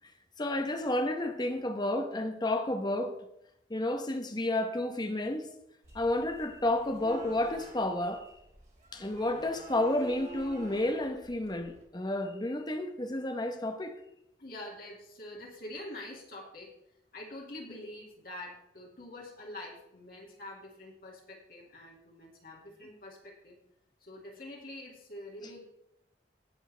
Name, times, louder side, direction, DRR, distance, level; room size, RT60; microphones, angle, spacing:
voice 1, 0.4-3.2 3.7-5.5 5.9-8.3 8.9-14.0, left 1 dB, 25° left, 1.0 m, -31 dB
sound 1, 5.8-11.8, right 2 dB, 40° right, 2.7 m, -49 dB
voice 2, 14.4-16.7 17.1-23.6 24.0-25.6, left 1 dB, 55° left, 2.3 m, -45 dB
18.5 x 7.2 x 3.4 m
head